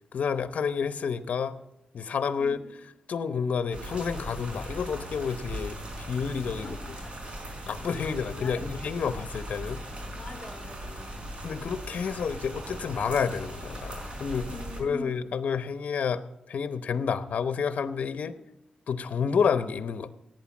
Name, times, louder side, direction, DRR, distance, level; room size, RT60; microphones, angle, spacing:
voice 1, 0.1-1.6 1.9-2.6 3.1-6.7 7.7-9.8 11.4-14.5 14.8-16.2 16.5-18.3 18.9-20.1, left 6 dB, 65° left, 11 dB, 0.8 m, -29 dB
voice 2, 2.4-2.7 6.6-7.3 8.0-8.9 10.1-11.3 14.4-15.3 18.2-18.4, left 2 dB, 35° left, 4 dB, 1.9 m, -44 dB
sound 1, 3.7-14.8, right 1 dB, 45° right, 4.9 m, -39 dB
17.5 x 9.2 x 7.3 m, 0.87 s
wide cardioid pair, 120°, 3 cm